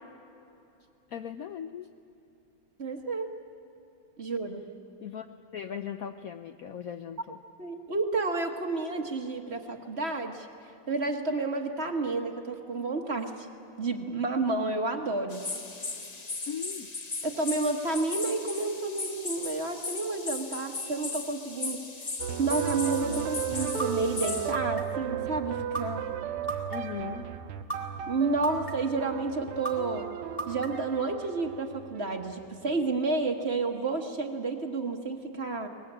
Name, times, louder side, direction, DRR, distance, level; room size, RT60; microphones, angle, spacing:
voice 1, 1.1-1.9 5.0-7.4 16.5-16.9 26.7-27.3, left 8 dB, 85° left, 8 dB, 0.7 m, -38 dB
voice 2, 2.8-3.3 4.2-4.7 7.6-10.5 10.9-13.5 13.8-15.4 17.2-21.8 22.4-26.0 28.1-30.1 30.5-35.7, right 3 dB, 35° right, 4 dB, 1.4 m, -30 dB
sound 1, 15.3-24.5, left 3 dB, 35° left, 0.6 m, -37 dB
sound 2, 22.2-32.4, right 9 dB, 90° right, 1.7 m, -35 dB
sound 3, 23.8-23.9 24.5-25.0 25.7-25.8 26.5-27.0 27.7-27.8 28.4-28.9 29.6-29.7 30.4-30.9, right 3 dB, 20° left, 3.4 m, -33 dB
23.5 x 19.5 x 8.7 m, 2.9 s
omnidirectional pair, 2.3 m